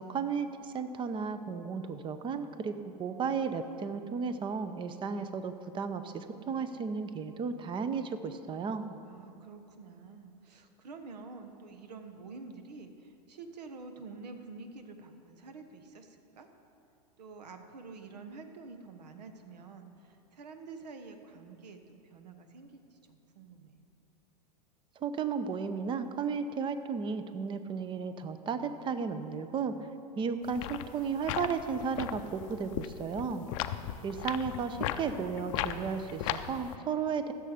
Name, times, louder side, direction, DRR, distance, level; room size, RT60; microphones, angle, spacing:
voice 1, 0.0-8.9 25.0-29.8 30.2-33.5 34.0-37.3, right 5 dB, 25° right, 10 dB, 0.7 m, -34 dB
voice 2, 9.0-16.5 17.2-23.8 34.0-35.6, right 4 dB, 80° right, 7 dB, 1.2 m, -48 dB
sound 1, 30.4-36.8, left 12 dB, 50° left, 0.5 m, -37 dB
15.5 x 6.8 x 5.0 m, 2.7 s
hypercardioid pair, 110°, 21 cm